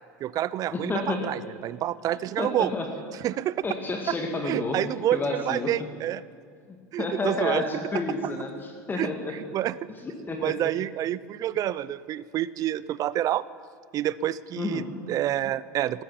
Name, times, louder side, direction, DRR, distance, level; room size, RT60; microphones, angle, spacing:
voice 1, 0.2-2.7 3.2-3.6 4.1-4.2 4.4-6.2 6.9-7.6 8.9-9.8 10.4-13.4 13.9-16.0, right 12 dB, 40° right, 19 dB, 0.5 m, -28 dB
voice 2, 0.7-1.3 2.4-2.9 3.6-5.7 6.7-9.3 10.0-10.6 14.6-14.9, left 3 dB, 20° left, 3 dB, 1.8 m, -30 dB
13.0 x 12.5 x 7.3 m, 2.1 s
hypercardioid pair, 85°, 9 cm